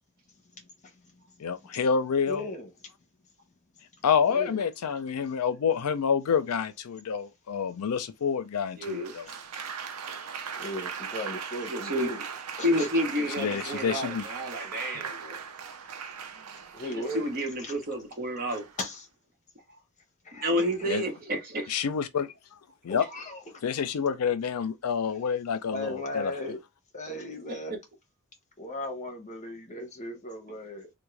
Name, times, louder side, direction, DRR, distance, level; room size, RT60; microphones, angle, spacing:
voice 1, 1.4-2.4 4.0-9.3 13.4-14.2 20.9-21.0 21.7-22.3 22.8-23.1 23.6-26.3, left 6 dB, 80° left, 0.5 m, -28 dB
voice 2, 2.2-2.7 4.3-4.7 9.2-9.4 10.6-12.2 12.6-13.0 16.7-17.3 17.6-17.8 18.5-19.1 20.2-20.9 22.9-23.6 25.1-25.2 25.7-26.6 26.9-27.7 28.6-30.9, left 1 dB, 35° left, 0.9 m, -37 dB
voice 3, 8.8-9.2 11.7-12.1 12.6-15.4 16.9-18.7 19.7-19.8 20.3-21.7 27.5-27.6, equal, 45° right, 1.0 m, -30 dB
Applause, 8.8-17.7 18.5-18.9, right 6 dB, 75° right, 0.6 m, -39 dB
3.5 x 2.2 x 3.1 m
head